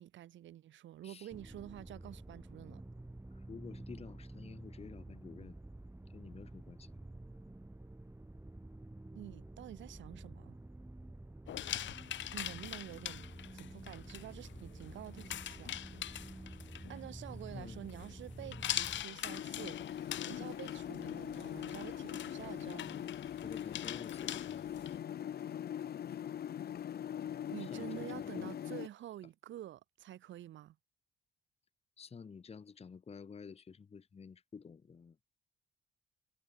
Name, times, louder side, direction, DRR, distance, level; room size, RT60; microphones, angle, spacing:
voice 1, 0.0-2.8 9.1-10.6 12.3-13.3 13.5-15.8 16.9-23.1 27.5-30.8, right 12 dB, 70° right, 1.1 m, -49 dB
sound 1, 1.3-19.0, right 2 dB, 10° right, 4.4 m, -50 dB
voice 2, 3.3-5.6 6.1-6.9 17.5-17.8 23.4-24.6 27.6-28.5 32.0-35.2, left 5 dB, 30° left, 1.0 m, -50 dB
sound 2, 11.5-25.0, left 12 dB, 70° left, 1.4 m, -44 dB
sound 3, 19.3-28.9, left 10 dB, 50° left, 0.8 m, -42 dB
cardioid pair, 90°, 20 cm